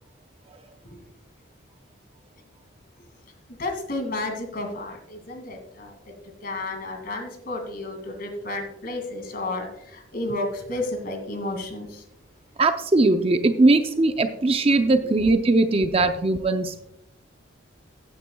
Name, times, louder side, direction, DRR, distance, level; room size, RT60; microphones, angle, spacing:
voice 1, 3.6-6.1 6.4-12.0 14.8-14.9, left 2 dB, 45° left, 4 dB, 2.2 m, -32 dB
voice 2, 12.6-16.8, right 2 dB, 30° right, 8 dB, 0.5 m, -20 dB
15.0 x 9.3 x 2.3 m, 0.79 s
head